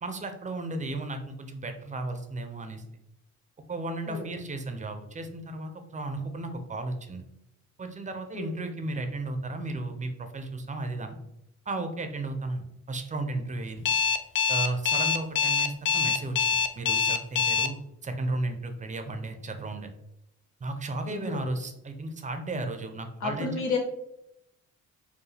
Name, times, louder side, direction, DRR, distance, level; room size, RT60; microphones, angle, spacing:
voice 1, 0.0-2.8 3.7-7.2 7.8-11.1 11.7-13.9 14.5-17.8 18.0-19.9 20.6-23.6, right 2 dB, 25° right, 7 dB, 0.6 m, -34 dB
Alarm, 13.8-17.7, left 6 dB, 40° left, 0.4 m, -24 dB
voice 2, 21.0-21.4 23.2-23.8, left 4 dB, 75° left, 1 dB, 1.1 m, -31 dB
4.5 x 2.3 x 3.3 m, 0.81 s
cardioid pair, 90°, 30 cm